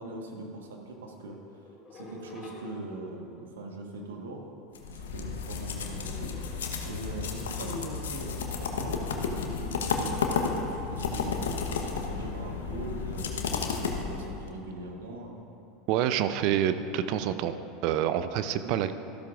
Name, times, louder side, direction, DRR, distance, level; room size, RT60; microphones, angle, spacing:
voice 1, 0.0-1.4 1.9-4.4 4.9-6.4 6.8-11.5 12.0-15.4 18.6-18.8, right 2 dB, 80° right, 1 dB, 1.3 m, -41 dB
sound 1, 1.3-3.5 5.8-7.0 9.0-9.7 10.1-10.4, left 1 dB, 35° left, 2.7 m, -50 dB
sound 2, 4.8-14.5, left 5 dB, 80° left, 0.9 m, -32 dB
voice 2, 15.9-17.6 17.8-19.0, right 10 dB, 60° right, 11 dB, 0.5 m, -27 dB
13.5 x 12.5 x 2.5 m, 2.9 s
hypercardioid pair, 85°, 0 cm